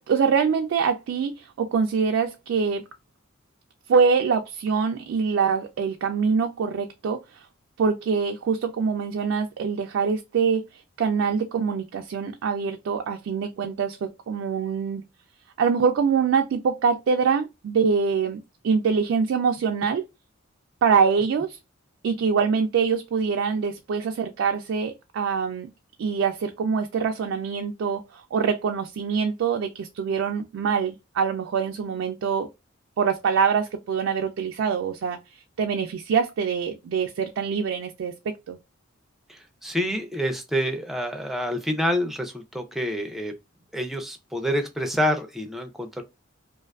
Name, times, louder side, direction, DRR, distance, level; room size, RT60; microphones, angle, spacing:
voice 1, 0.0-2.8 3.9-7.4 7.8-15.0 15.6-20.0 20.8-21.6 22.0-25.7 26.0-32.5 33.0-35.2 35.6-38.1 38.5-38.6, right 6 dB, 65° right, 0.3 m, -24 dB
voice 2, 39.3-43.3 43.7-46.0, equal, ahead, 0.4 m, -27 dB
2.5 x 2.3 x 2.3 m
head